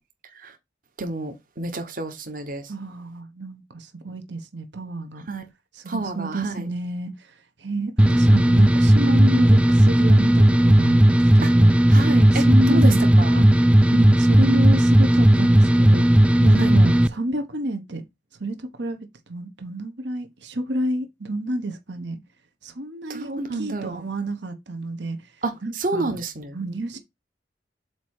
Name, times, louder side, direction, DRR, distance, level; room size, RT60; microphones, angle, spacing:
voice 1, 1.0-2.7 5.3-5.4 5.9-6.7 11.4-11.5 11.9-13.4 16.5-16.7 23.1-24.0 25.4-26.6, right 3 dB, 50° right, 1.2 m, -29 dB
voice 2, 2.7-5.3 5.7-7.1 7.6-11.7 12.3-13.0 13.3-13.6 13.9-18.0 18.4-22.2 22.6-25.2 25.6-26.1 26.5-27.0, right 1 dB, 75° right, 1.2 m, -29 dB
sound 1, 8.0-17.1, right 1 dB, 5° right, 0.4 m, -15 dB
8.0 x 2.9 x 4.7 m
head